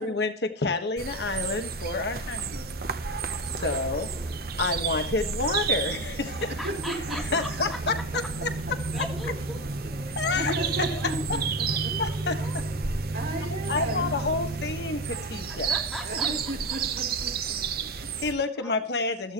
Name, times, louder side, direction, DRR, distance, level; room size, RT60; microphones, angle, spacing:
voice 1, 0.0-2.9 3.6-4.1 4.6-6.5 7.3-7.7 8.4-9.0 10.2-11.0 11.3-11.4 12.0-12.4 13.5-15.7 18.2-19.3, left 3 dB, 70° left, 7 dB, 1.4 m, -29 dB
sound 1, 1.0-18.3, right 4 dB, 55° right, 0.9 m, -31 dB
voice 2, 3.4-4.4 6.4-8.3 8.9-10.6 10.9-11.4 11.7-13.7 15.5-16.8 18.0-18.3 18.6-18.8, equal, ahead, -1 dB, 3.0 m, -42 dB
voice 3, 7.1-7.4 10.3-11.9 13.1-14.1 16.0-18.1, right 1 dB, 75° right, -4 dB, 5.7 m, -35 dB
15.5 x 14.0 x 3.0 m, 0.43 s
head